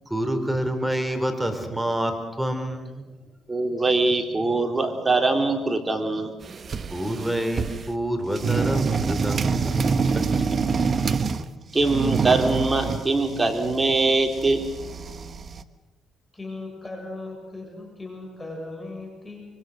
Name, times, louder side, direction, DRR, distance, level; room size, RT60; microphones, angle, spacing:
voice 1, 0.1-3.1 6.9-10.4, right 1 dB, 5° right, 6 dB, 3.9 m, -28 dB
voice 2, 3.5-6.3 11.5-14.6, right 3 dB, 20° right, 4 dB, 3.9 m, -22 dB
sound 1, 6.4-8.0 8.4-11.5 11.8-15.6, right 5 dB, 45° right, 1.2 m, -26 dB
voice 3, 16.3-19.5, left 2 dB, 20° left, 1 dB, 7.5 m, -37 dB
26.0 x 24.0 x 6.6 m, 1.2 s
cardioid pair, 90°, 0 cm